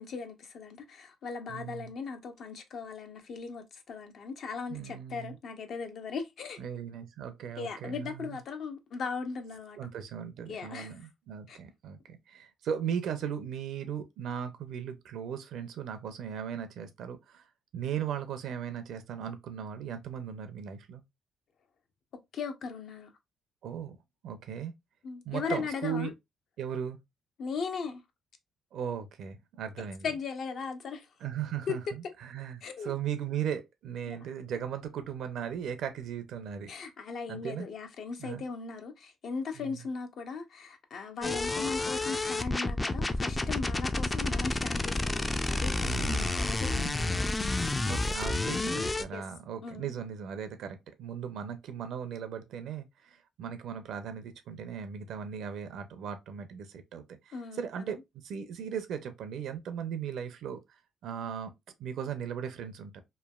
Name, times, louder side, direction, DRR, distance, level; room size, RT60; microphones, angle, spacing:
voice 1, 0.0-6.6 7.6-9.8 10.5-11.1 11.5-11.6 22.3-23.1 25.0-26.1 27.4-28.0 30.0-31.1 31.7-31.8 32.6-32.9 34.1-34.3 36.7-47.4 49.1-49.2 49.6-49.9 57.3-58.0, left 5 dB, 65° left, 0.6 m, -38 dB
voice 2, 1.5-1.9 4.7-5.4 6.6-8.4 9.8-17.4 17.7-21.0 23.6-24.0 24.2-24.7 25.2-26.1 26.6-27.0 28.7-30.0 31.2-36.7 37.3-37.7 38.2-38.4 39.6-39.8 45.8-46.4 47.9-58.0 58.2-60.6 61.0-61.5 61.8-63.0, right 8 dB, 75° right, 0.6 m, -37 dB
sound 1, 41.2-49.0, left 2 dB, 20° left, 0.3 m, -30 dB
3.2 x 2.2 x 2.3 m
cardioid pair, 90°, 0 cm